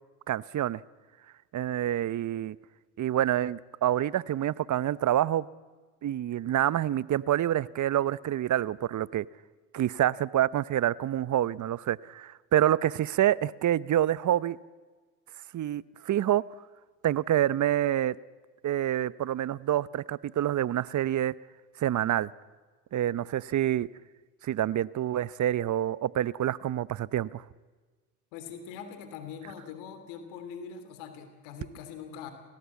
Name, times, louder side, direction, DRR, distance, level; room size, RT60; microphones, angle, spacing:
voice 1, 0.3-0.8 1.5-2.6 3.0-5.5 6.0-9.2 9.7-14.6 15.5-16.4 17.0-18.2 18.6-21.3 21.8-22.3 22.9-23.9 24.4-27.4, right 12 dB, 45° right, 20 dB, 0.8 m, -27 dB
voice 2, 28.3-32.3, left 7 dB, 80° left, 8 dB, 3.1 m, -42 dB
29.5 x 17.5 x 8.4 m, 1.4 s
hypercardioid pair, 65°, 42 cm